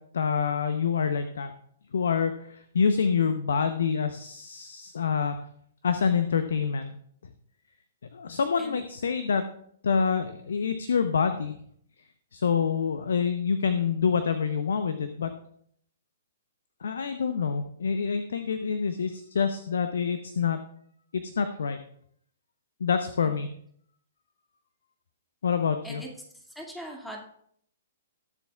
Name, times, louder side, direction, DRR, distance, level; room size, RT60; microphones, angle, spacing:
voice 1, 0.1-1.5 1.9-5.4 5.8-6.9 8.1-9.4 9.8-11.6 12.3-15.3 16.8-20.6 21.1-21.8 22.8-23.5 25.4-26.0, left 6 dB, 65° left, 9 dB, 0.8 m, -26 dB
voice 2, 26.3-27.3, equal, 5° left, 0 dB, 2.2 m, -41 dB
20.0 x 7.3 x 2.4 m, 0.65 s
figure-of-eight pair, 115°, 0 cm